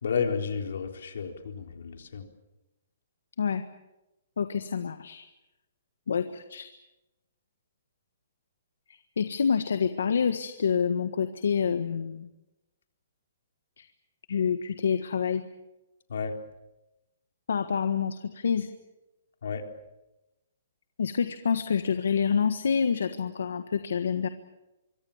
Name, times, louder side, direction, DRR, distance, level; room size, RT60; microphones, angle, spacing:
voice 1, 0.0-2.3 16.1-16.4 19.4-19.6, left 6 dB, 70° left, 4 dB, 3.9 m, -31 dB
voice 2, 4.4-5.3 6.1-6.7 8.9-12.3 13.8-13.9 14.3-15.5 17.5-18.7 21.0-24.3, left 6 dB, 85° left, 9 dB, 1.5 m, -27 dB
24.5 x 24.5 x 7.3 m, 0.97 s
hypercardioid pair, 170°, 0 cm